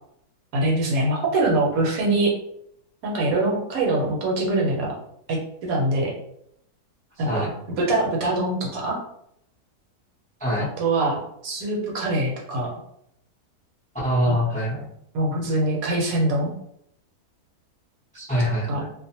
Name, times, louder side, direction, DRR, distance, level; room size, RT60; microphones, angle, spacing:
voice 1, 0.5-2.3 3.0-4.9 5.3-6.1 7.2-7.5 7.8-9.0 10.8-12.7 14.3-14.4 15.1-16.5 18.7-18.8, right 2 dB, 70° right, -2 dB, 1.1 m, -23 dB
voice 2, 14.0-14.8 18.1-18.9, equal, 10° left, -7 dB, 0.4 m, -24 dB
2.5 x 2.1 x 2.8 m, 0.72 s
omnidirectional pair, 1.7 m